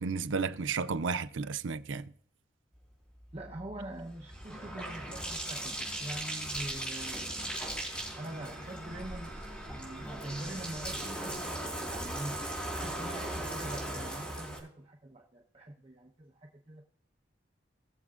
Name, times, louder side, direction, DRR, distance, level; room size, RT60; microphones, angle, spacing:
voice 1, 0.0-2.1, right 5 dB, 85° right, 0.6 m, -32 dB
Bathtub (filling or washing), 3.2-14.6, right 1 dB, 5° left, 4.0 m, -38 dB
voice 2, 3.3-7.6 8.1-9.3 9.7-16.8, right 1 dB, 30° right, 1.0 m, -44 dB
20.5 x 7.1 x 2.4 m
head